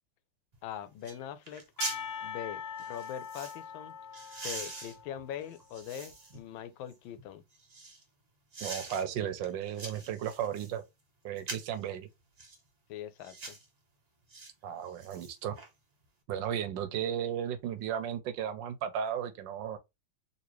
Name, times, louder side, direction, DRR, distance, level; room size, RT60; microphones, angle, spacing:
sound 1, 0.5-0.6 1.0-1.2 1.4-2.0 2.8-3.6 4.1-6.4 6.9-8.0 8.5-9.0 9.4-10.7 11.4-11.8 12.4-12.6 13.2-13.6 14.3-14.5 14.9-15.7 16.0-16.1, right 3 dB, 40° right, 0.5 m, -43 dB
voice 1, 0.6-1.6 2.2-3.9 4.3-7.4 12.9-13.6, left 10 dB, 85° left, 1.4 m, -42 dB
Percussion, 1.8-5.7, left 7 dB, 60° left, 1.1 m, -42 dB
voice 2, 8.6-10.8 11.2-12.1 14.6-15.6 16.3-19.8, right 9 dB, 75° right, 1.3 m, -35 dB
3.9 x 2.7 x 3.0 m
omnidirectional pair, 2.1 m